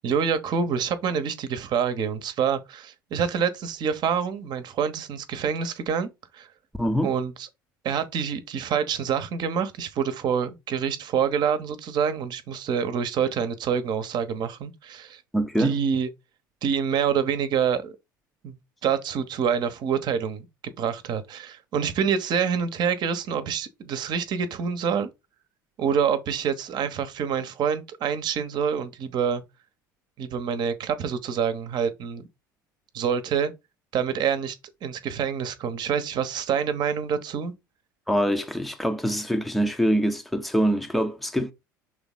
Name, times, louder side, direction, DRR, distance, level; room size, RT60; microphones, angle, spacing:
voice 1, 0.0-6.5 7.0-7.5 7.8-15.2 15.6-16.1 16.6-17.9 18.4-20.5 20.8-25.1 25.8-29.4 30.2-32.3 32.9-33.5 33.9-34.6 34.8-37.5, right 7 dB, 40° right, 1.1 m, -26 dB
voice 2, 6.8-7.1 15.3-15.8 38.1-41.5, equal, ahead, 0.8 m, -24 dB
6.5 x 4.0 x 3.8 m
figure-of-eight pair, 65°, 11 cm